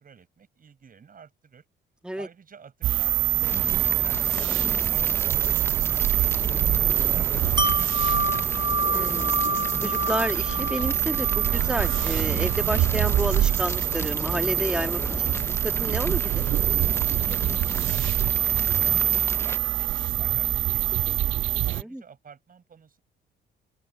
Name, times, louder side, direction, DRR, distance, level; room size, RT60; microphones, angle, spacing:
voice 1, 0.0-1.7 2.1-8.7 17.2-21.4 21.6-23.0, right 6 dB, 45° right, 6.9 m, -50 dB
sound 1, 2.8-21.8, right 14 dB, 80° right, 1.2 m, -25 dB
Fire, 3.4-19.6, left 2 dB, 10° left, 0.6 m, -35 dB
Wind chime, 7.6-13.4 13.8-13.9, right 2 dB, 20° right, 1.0 m, -29 dB
voice 2, 8.9-9.4 9.8-15.0 15.3-16.4 21.8-22.0, right 1 dB, 5° right, 2.0 m, -30 dB
open air
cardioid pair, 90°, 20 cm